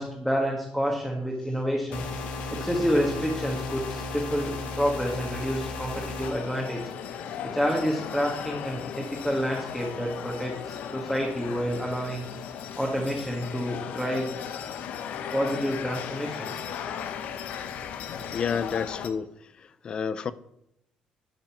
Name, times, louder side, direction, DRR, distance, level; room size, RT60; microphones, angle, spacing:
voice 1, 0.0-2.0 2.5-6.8 7.5-12.3 12.7-14.3 15.3-16.5, equal, ahead, 1.6 m, -28 dB
sound 1, 1.9-6.3, left 3 dB, 90° left, 1.9 m, -34 dB
sound 2, 6.2-19.1, left 8 dB, 65° left, 1.0 m, -36 dB
voice 2, 18.3-19.3 19.8-20.3, left 6 dB, 35° left, 0.5 m, -29 dB
12.0 x 5.6 x 7.1 m
cardioid pair, 155°, 3 cm